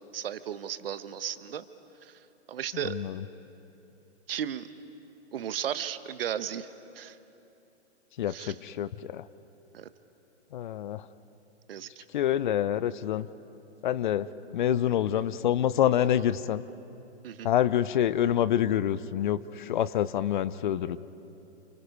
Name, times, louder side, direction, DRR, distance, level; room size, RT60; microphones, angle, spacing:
voice 1, 0.1-1.7 2.0-2.2 2.5-3.0 4.3-4.7 5.3-6.7 6.9-7.2 8.3-8.5 9.7-9.9 11.7-12.0 17.2-17.5, right 9 dB, 55° right, 13 dB, 1.2 m, -35 dB
voice 2, 2.7-3.2 8.2-9.3 10.5-11.1 12.1-13.3 13.8-14.3 14.5-16.6 17.4-21.0, left 10 dB, 45° left, 17 dB, 0.7 m, -27 dB
30.0 x 28.5 x 5.4 m, 2.9 s
hypercardioid pair, 130°, 34 cm